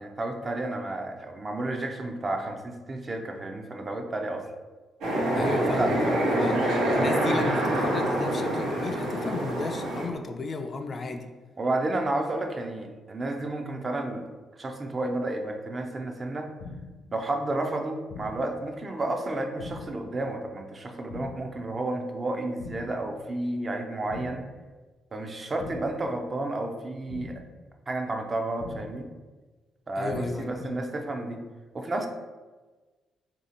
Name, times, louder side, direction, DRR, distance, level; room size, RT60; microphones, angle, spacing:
voice 1, 0.0-4.5 5.8-5.9 11.6-16.5 17.1-24.4 25.1-27.4 27.9-29.1 29.9-31.4 31.7-32.1, right 2 dB, 30° right, 4 dB, 0.5 m, -31 dB
sound 1, 5.0-10.1, right 1 dB, 90° right, 0.9 m, -26 dB
voice 2, 5.4-11.3 30.0-30.8, left 3 dB, 40° left, 6 dB, 0.3 m, -34 dB
sound 2, 16.6-17.1 18.1-18.6 19.6-20.1 21.1-21.6 22.6-23.1 24.1-24.6 25.6-26.1 27.1-27.6 28.6-29.1 30.1-30.6, left 4 dB, 85° left, 0.9 m, -42 dB
2.8 x 2.7 x 4.1 m, 1.3 s
cardioid pair, 90°, 0 cm